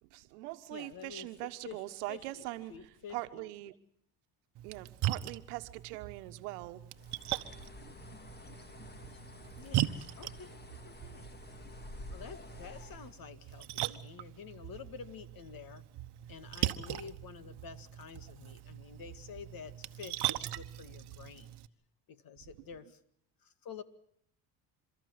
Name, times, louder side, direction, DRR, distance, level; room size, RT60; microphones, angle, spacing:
voice 1, 0.0-2.7 3.1-3.7 4.6-6.8 7.8-7.9 8.5-8.6, right 19 dB, 85° right, 11 dB, 1.3 m, -42 dB
voice 2, 0.7-1.3 1.6-2.4 2.7-3.5 9.6-11.3 12.1-15.8 16.3-21.5 22.1-23.0 23.4-23.8, left 6 dB, 50° left, 12 dB, 2.1 m, -49 dB
Splash splatter, 4.6-21.7, right 14 dB, 60° right, 1.2 m, -40 dB
Bird, 6.9-13.2, left 2 dB, 20° left, 2.2 m, -50 dB
29.0 x 13.5 x 9.5 m, 0.70 s
supercardioid pair, 75°, 46 cm